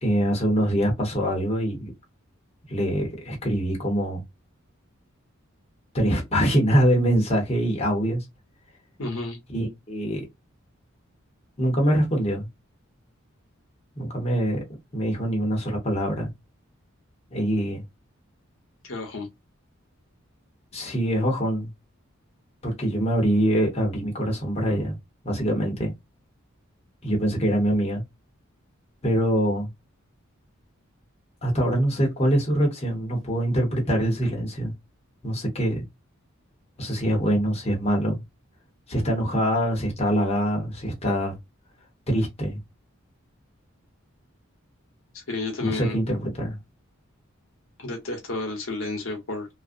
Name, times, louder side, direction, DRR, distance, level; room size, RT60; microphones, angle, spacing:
voice 1, 0.0-1.9 2.7-4.2 5.9-8.2 9.5-10.2 11.6-12.5 14.0-14.6 14.9-16.3 17.3-17.8 20.7-21.7 22.6-25.0 25.2-25.9 27.0-28.0 29.0-29.7 31.4-34.7 35.2-35.8 36.8-38.2 38.9-41.4 42.1-42.6 45.6-46.6, equal, 30° left, 0.9 m, -24 dB
voice 2, 9.0-9.4 18.8-19.3 45.1-46.0 47.8-49.5, left 2 dB, 70° left, 0.9 m, -31 dB
2.4 x 2.1 x 2.5 m
head